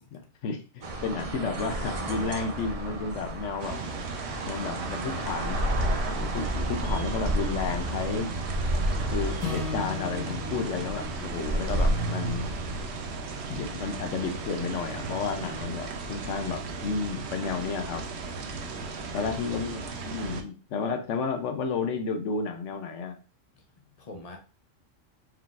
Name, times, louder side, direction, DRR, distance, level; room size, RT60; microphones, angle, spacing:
voice 1, 0.1-3.8 4.5-5.6 6.2-8.3 9.1-12.5 13.5-18.1 19.1-23.2, left 5 dB, 70° left, 7 dB, 0.9 m, -32 dB
sound 1, 0.8-15.6, right 1 dB, 45° right, 0.4 m, -32 dB
sound 2, 3.6-20.4, right 4 dB, 65° right, 0.8 m, -36 dB
Acoustic guitar / Strum, 9.4-13.7, left 5 dB, 10° right, 1.4 m, -39 dB
voice 2, 18.7-19.3 23.5-23.6 24.0-24.4, left 2 dB, 35° left, 3 dB, 0.7 m, -46 dB
4.7 x 3.6 x 2.4 m, 0.36 s
omnidirectional pair, 1.3 m